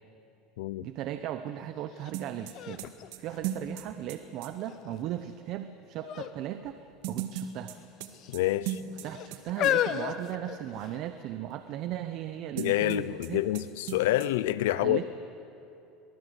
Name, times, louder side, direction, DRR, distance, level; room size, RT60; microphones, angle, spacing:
voice 1, 0.8-2.8 3.2-7.7 9.0-13.5 14.7-15.0, right 12 dB, 55° right, 10 dB, 0.9 m, -37 dB
sound 1, 2.0-2.1 2.5-4.1 4.7-5.2 6.0-6.4 6.6-6.8 7.7-8.3 9.0-11.1 11.8-11.9, left 11 dB, 50° left, 1.0 m, -32 dB
sound 2, 2.1-4.5 7.0-9.4 9.6-9.7 12.6-13.3 13.5-13.6 13.9-14.3, right 10 dB, 75° right, 1.7 m, -37 dB
voice 2, 8.3-8.8 12.6-15.0, left 15 dB, 90° left, 18 dB, 0.6 m, -27 dB
23.5 x 19.0 x 8.1 m, 2.9 s
supercardioid pair, 130°, 0 cm